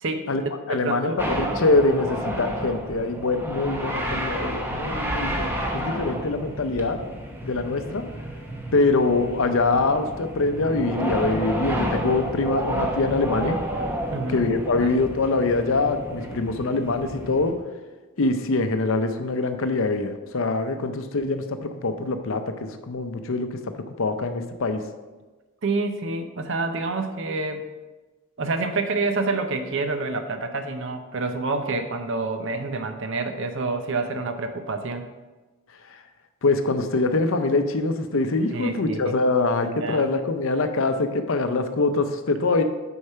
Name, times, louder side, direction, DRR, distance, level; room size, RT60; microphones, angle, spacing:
voice 1, 0.0-0.4 0.7-1.2 14.1-14.5 14.8-14.9 25.6-27.7 28.4-35.1 38.5-39.1 39.6-40.1, right 3 dB, 55° right, 8 dB, 0.6 m, -28 dB
voice 2, 0.7-7.0 7.4-8.0 8.7-13.6 14.3-17.5 18.2-23.7 24.0-24.8 35.9-36.0 36.4-42.6, left 3 dB, 60° left, 8 dB, 0.6 m, -24 dB
sound 1, 1.2-17.5, right 1 dB, 10° right, 0.7 m, -30 dB
6.5 x 4.7 x 5.6 m, 1.2 s
head